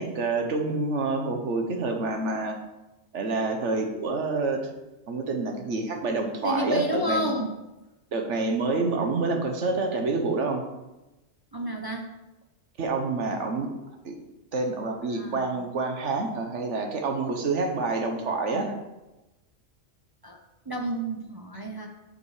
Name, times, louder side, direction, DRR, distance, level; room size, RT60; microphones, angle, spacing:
voice 1, 0.0-2.6 3.1-4.7 5.1-7.3 8.1-10.6 12.8-13.7 14.0-14.1 14.5-18.7, right 3 dB, 70° right, 4 dB, 1.3 m, -27 dB
voice 2, 6.4-7.5 11.5-12.1 15.0-15.5 20.2-20.4 20.7-21.9, right 1 dB, 25° right, 2 dB, 0.5 m, -30 dB
8.1 x 5.3 x 4.8 m, 1.0 s
omnidirectional pair, 1.3 m